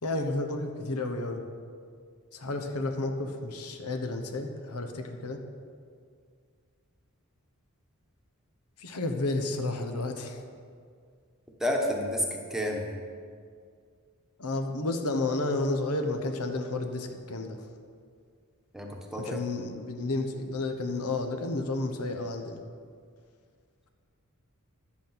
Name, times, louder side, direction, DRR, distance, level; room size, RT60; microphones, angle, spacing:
voice 1, 0.0-1.4 2.3-5.4 8.8-10.4 14.4-17.6 19.2-22.6, left 2 dB, 85° left, 5 dB, 1.1 m, -31 dB
voice 2, 11.6-12.9 18.7-19.4, equal, ahead, 1 dB, 1.1 m, -30 dB
11.0 x 8.3 x 5.8 m, 2.1 s
head